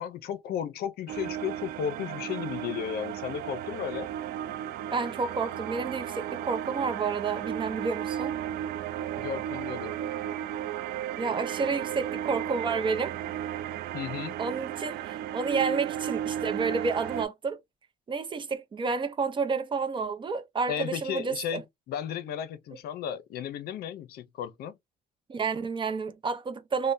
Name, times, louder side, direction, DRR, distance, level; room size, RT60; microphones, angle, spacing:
voice 1, 0.0-4.1 9.2-10.0 13.9-14.4 20.7-21.6 21.9-24.8, left 9 dB, 65° left, 0.6 m, -34 dB
sound 1, 1.1-17.2, right 11 dB, 70° right, 0.4 m, -34 dB
voice 2, 4.9-8.4 11.2-13.1 14.4-17.6 18.1-21.6 25.3-26.9, right 4 dB, 30° right, 0.6 m, -30 dB
3.3 x 2.2 x 2.6 m
cardioid pair, 110°, 17 cm